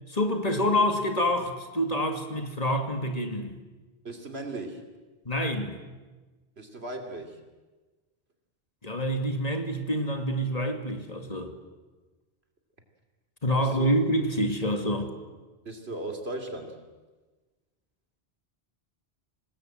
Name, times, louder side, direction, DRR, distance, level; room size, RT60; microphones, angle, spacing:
voice 1, 0.1-3.6 5.3-5.8 8.8-11.6 13.4-15.1, equal, 40° left, 6 dB, 2.2 m, -27 dB
voice 2, 4.0-4.9 6.6-7.4 13.6-13.9 15.6-16.8, right 2 dB, 80° right, 5 dB, 3.1 m, -37 dB
25.5 x 19.5 x 7.7 m, 1.3 s
omnidirectional pair, 1.1 m